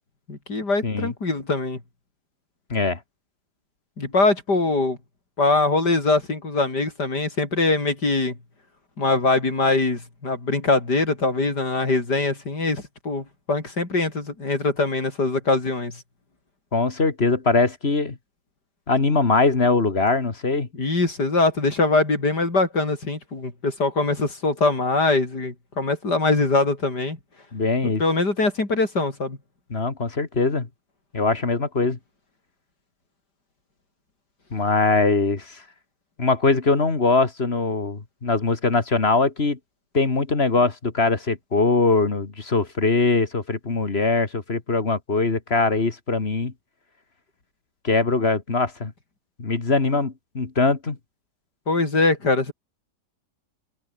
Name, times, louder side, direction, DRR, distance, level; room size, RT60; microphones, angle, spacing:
voice 1, 0.3-1.8 4.0-5.0 5.4-8.4 9.0-16.0 20.7-27.2 28.0-29.4 51.7-52.5, left 3 dB, 75° left, 5.6 m, -22 dB
voice 2, 2.7-3.0 16.7-18.2 18.9-20.7 27.5-28.0 29.7-30.7 31.1-32.0 34.5-35.6 36.2-39.6 39.9-46.5 47.8-48.9 49.4-51.0, left 3 dB, 35° left, 2.3 m, -22 dB
omnidirectional pair, 1.8 m